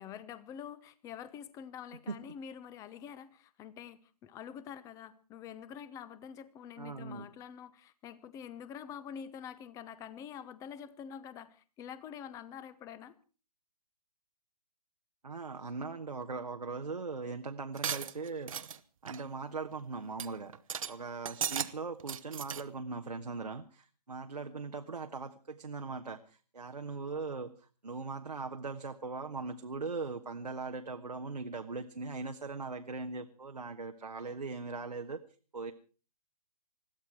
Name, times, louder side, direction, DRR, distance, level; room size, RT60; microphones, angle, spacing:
voice 1, 0.0-13.1, left 8 dB, 15° left, 18 dB, 0.9 m, -46 dB
voice 2, 6.8-7.2 15.2-20.5 20.9-27.5 27.8-35.2 35.5-35.7, right 4 dB, 80° right, 5 dB, 1.2 m, -40 dB
sound 1, 17.8-18.8 19.1-19.3 19.7-19.8 20.2-20.3 20.5-20.9 21.2-21.7 22.0-22.6, right 8 dB, 55° right, 1.0 m, -36 dB
21.0 x 14.5 x 4.6 m, 0.37 s
figure-of-eight pair, 130°, 20 cm